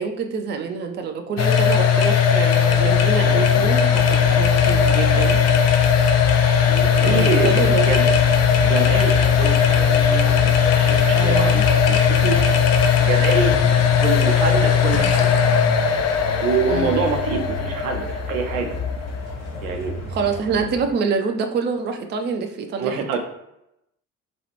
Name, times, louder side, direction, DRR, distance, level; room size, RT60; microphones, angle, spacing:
voice 1, 0.0-5.4 7.0-8.0 11.1-11.5 16.7-17.0 20.1-23.2, right 5 dB, 25° right, 5 dB, 0.4 m, -26 dB
sound 1, 1.4-20.1, left 7 dB, 40° left, 0.5 m, -18 dB
sound 2, 2.7-20.9, left 1 dB, 90° left, 1.5 m, -31 dB
voice 2, 6.7-8.1 8.6-12.4 13.0-13.6 13.9-15.3 16.4-18.8 19.6-19.9 22.8-23.2, right 5 dB, 75° right, 4 dB, 0.6 m, -26 dB
3.0 x 2.3 x 2.9 m, 0.83 s
figure-of-eight pair, 50°, 41 cm